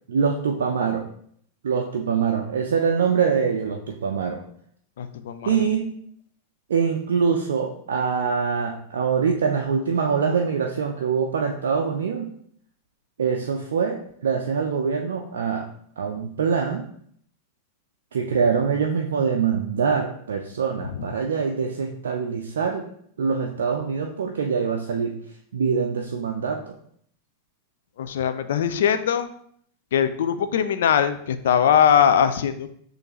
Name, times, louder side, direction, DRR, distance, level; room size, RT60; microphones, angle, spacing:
voice 1, 0.1-1.1 1.6-4.4 5.5-5.9 6.7-12.3 13.2-15.7 16.0-16.9 18.1-22.9 23.2-25.1 25.5-26.7, right 6 dB, 65° right, 2 dB, 0.4 m, -24 dB
voice 2, 5.0-5.6 20.9-21.0 28.0-29.3 29.9-32.7, left 8 dB, 60° left, 11 dB, 0.3 m, -21 dB
6.5 x 2.5 x 2.9 m, 0.65 s
figure-of-eight pair, 90°, 0 cm